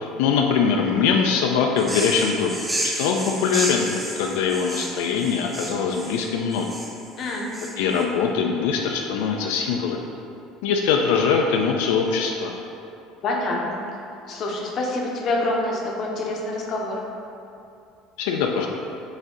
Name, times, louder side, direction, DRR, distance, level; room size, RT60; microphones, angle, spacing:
voice 1, 0.0-6.7 7.8-10.1 10.6-12.5 18.2-18.7, left 6 dB, 85° left, 2 dB, 0.3 m, -22 dB
sound 1, 1.8-8.0, right 1 dB, 5° right, 0.4 m, -31 dB
voice 2, 7.2-7.5 13.2-13.8 14.3-17.0, left 2 dB, 40° left, -1 dB, 0.6 m, -26 dB
5.0 x 2.7 x 3.7 m, 2.6 s
cardioid pair, 160°, 0 cm